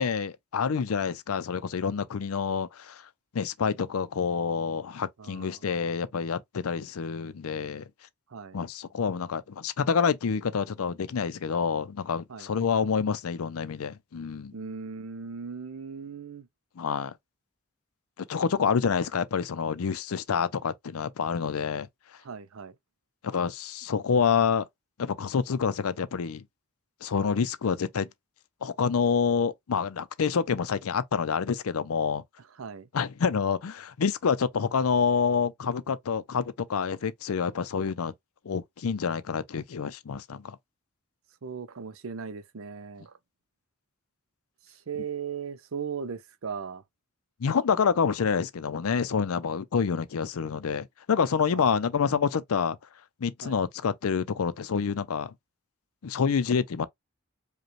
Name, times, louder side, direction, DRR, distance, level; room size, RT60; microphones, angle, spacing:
voice 1, 0.0-7.9 8.5-14.5 16.8-17.1 18.3-21.9 23.2-24.7 25.0-26.4 27.0-28.1 28.6-32.2 32.9-38.1 38.4-40.6 47.4-52.8 53.2-55.3 56.0-56.9, left 6 dB, 85° left, 0.5 m, -27 dB
voice 2, 5.2-5.6 8.3-8.6 12.3-12.5 14.5-16.5 22.2-22.8 27.2-27.3 32.6-32.9 41.4-43.2 44.7-46.8 51.5-51.7 53.4-53.6, right 6 dB, 75° right, 0.6 m, -38 dB
5.1 x 2.2 x 3.1 m
head